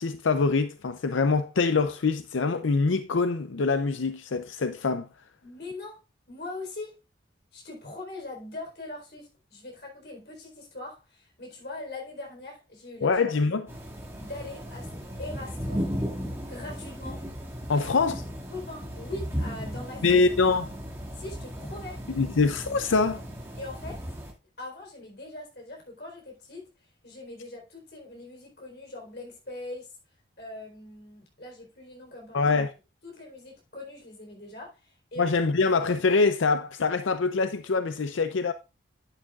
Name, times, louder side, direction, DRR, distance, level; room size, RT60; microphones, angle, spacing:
voice 1, 0.0-5.1 13.0-13.7 17.7-18.2 20.0-20.6 22.2-23.2 32.3-32.7 35.2-38.5, left 4 dB, 90° left, 0.6 m, -24 dB
voice 2, 5.4-6.0 6.3-7.0 7.5-13.1 14.2-15.9 16.5-17.2 17.7-17.9 18.5-20.2 21.1-22.0 23.6-24.0 24.6-26.7 27.0-29.9 30.4-32.5 33.0-35.3, left 2 dB, 55° left, 4.1 m, -41 dB
sound 1, 13.7-24.3, equal, 15° right, 2.1 m, -36 dB
10.5 x 8.9 x 2.4 m
head